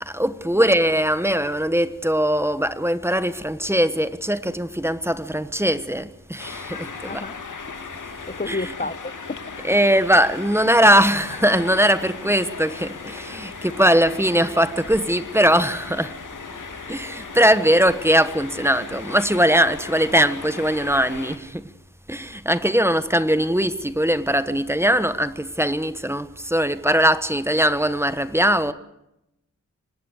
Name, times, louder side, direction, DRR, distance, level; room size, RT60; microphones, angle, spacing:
voice 1, 0.0-7.2 8.5-8.7 9.6-16.2 16.9-21.7 22.1-28.7, equal, 10° right, 1.2 m, -20 dB
sound 1, 6.4-21.4, left 4 dB, 75° left, 2.5 m, -37 dB
voice 2, 7.1-7.4 7.7-7.8 8.3-9.4, left 3 dB, 30° left, 0.9 m, -31 dB
26.0 x 19.0 x 6.6 m
wide cardioid pair, 95°, 31 cm